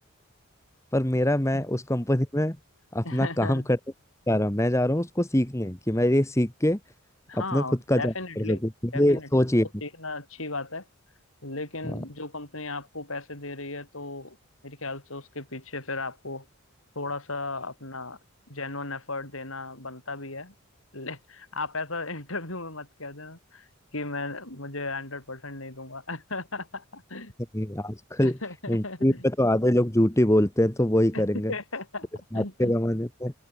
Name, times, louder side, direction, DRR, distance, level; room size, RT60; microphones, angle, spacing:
voice 1, 0.9-2.6 2.9-3.8 4.3-6.8 7.3-9.7 11.9-12.0 27.5-28.4 28.7-31.5 32.3-33.3, left 1 dB, 15° left, 1.4 m, -24 dB
voice 2, 3.0-3.7 7.3-8.6 8.9-9.3 9.8-10.8 11.4-14.4 14.6-16.4 16.9-18.2 18.5-20.5 20.9-23.7 23.9-27.3 28.2-29.3 31.1-31.2 31.5-32.7, left 3 dB, 70° left, 6.6 m, -36 dB
open air
head